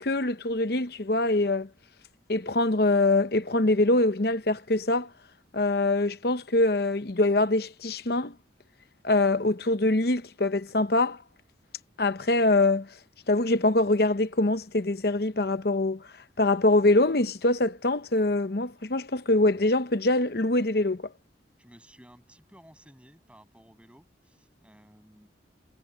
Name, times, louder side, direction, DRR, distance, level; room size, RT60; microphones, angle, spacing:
voice 1, 0.0-1.7 2.3-5.1 5.5-8.3 9.0-11.2 12.0-12.9 13.3-16.0 16.4-21.1, left 2 dB, 55° left, 0.9 m, -24 dB
voice 2, 21.6-25.3, equal, 5° right, 7.9 m, -55 dB
head